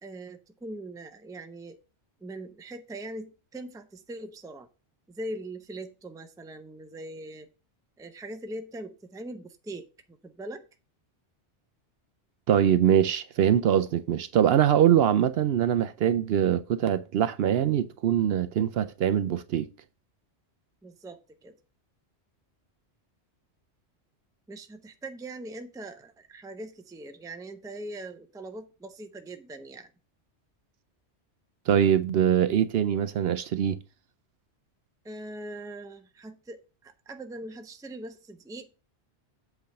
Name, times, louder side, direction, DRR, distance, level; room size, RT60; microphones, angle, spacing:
voice 1, 0.0-1.8 2.2-4.7 5.1-7.5 8.0-10.6 20.8-21.6 24.5-29.9 35.0-38.7, right 1 dB, 5° right, 0.5 m, -41 dB
voice 2, 12.5-19.7 31.7-33.8, right 9 dB, 65° right, 0.7 m, -23 dB
7.9 x 3.5 x 6.5 m
omnidirectional pair, 1.2 m